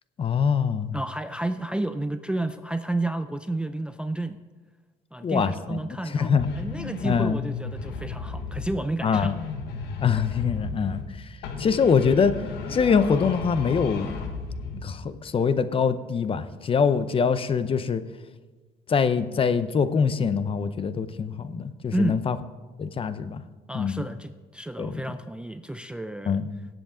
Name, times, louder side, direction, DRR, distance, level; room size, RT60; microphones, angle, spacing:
voice 1, 0.2-1.0 5.2-5.8 6.1-6.5 7.0-7.4 9.0-9.4 10.0-11.0 11.6-12.3 12.7-14.4 14.8-18.0 18.9-22.4 22.8-23.4 23.7-24.0 24.8-25.0 26.3-26.6, left 6 dB, 35° left, 13 dB, 0.6 m, -24 dB
voice 2, 0.9-4.4 5.1-9.3 21.9-22.3 23.7-26.4, right 1 dB, 5° right, 10 dB, 0.4 m, -31 dB
sound 1, 6.4-8.9 9.1-11.1 11.4-14.9, left 5 dB, 80° left, 1.3 m, -34 dB
17.0 x 7.8 x 3.8 m, 1.3 s
cardioid pair, 110°, 17 cm